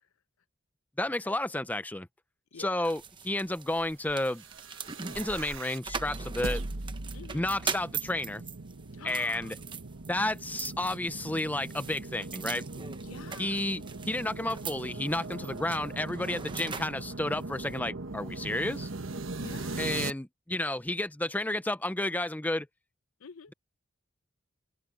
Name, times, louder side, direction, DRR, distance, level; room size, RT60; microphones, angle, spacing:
voice 1, 1.0-2.1 2.6-4.4 5.1-6.6 7.3-8.4 9.0-9.6 10.1-12.6 13.4-18.9 19.8-22.7, left 1 dB, 10° left, 0.6 m, -31 dB
sound 1, 2.8-17.8, right 6 dB, 25° right, 0.9 m, -42 dB
sound 2, 4.3-20.1, right 2 dB, 70° right, 1.2 m, -40 dB
voice 2, 9.0-9.5 13.0-13.6 19.4-20.0 23.2-23.5, left 5 dB, 90° left, 0.7 m, -47 dB
head